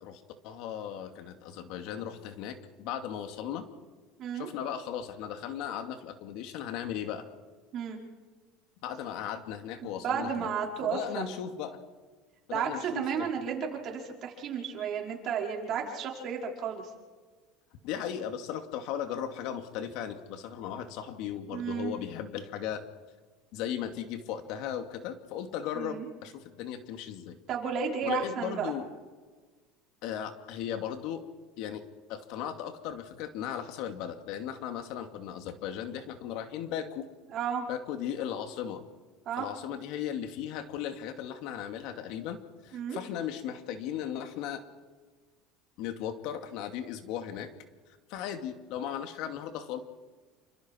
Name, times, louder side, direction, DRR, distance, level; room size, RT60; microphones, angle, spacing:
voice 1, 0.0-3.6 4.3-7.2 8.8-10.5 10.8-11.8 12.5-13.3 17.8-22.8 23.5-27.4 28.0-28.9 30.0-31.2 31.6-31.8 32.1-37.0 37.7-38.8 39.4-44.6 45.8-47.5 48.1-49.8, left 9 dB, 65° left, 6 dB, 2.5 m, -37 dB
voice 2, 9.8-11.3 12.5-16.8 21.5-21.9 25.8-26.1 27.5-28.7 37.3-37.7 39.3-39.5 42.7-43.0, right 7 dB, 40° right, -1 dB, 5.3 m, -33 dB
29.0 x 26.5 x 4.7 m, 1.4 s
cardioid pair, 145°, 0 cm